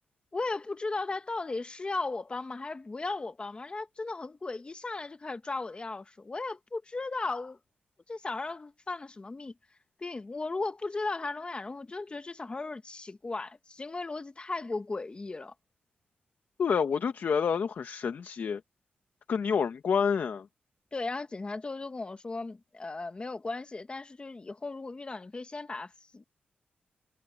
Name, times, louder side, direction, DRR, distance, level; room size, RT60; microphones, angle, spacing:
voice 1, 0.3-7.6 8.1-9.5 10.0-15.5 20.9-26.2, left 3 dB, 30° left, 1.4 m, -36 dB
voice 2, 16.6-18.6 19.3-20.5, left 6 dB, 65° left, 1.2 m, -28 dB
cardioid pair, 95°, 4 cm